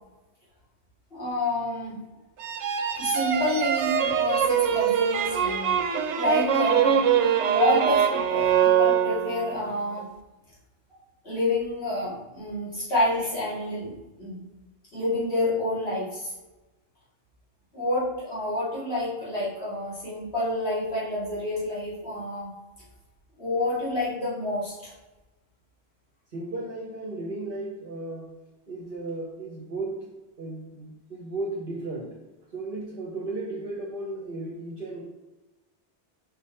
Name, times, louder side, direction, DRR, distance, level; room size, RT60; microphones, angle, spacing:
voice 1, 1.1-2.0 3.0-5.8 6.2-7.0 7.4-10.1 11.2-14.4 14.9-16.3 17.7-22.5 23.4-24.9, left 1 dB, 60° left, -9 dB, 2.6 m, -28 dB
sound 1, 2.4-9.6, right 9 dB, 85° right, 0.9 m, -23 dB
voice 2, 26.3-28.3 28.7-32.2 32.5-35.0, right 2 dB, 55° right, -3 dB, 1.2 m, -35 dB
5.4 x 4.1 x 4.3 m, 1.1 s
omnidirectional pair, 1.2 m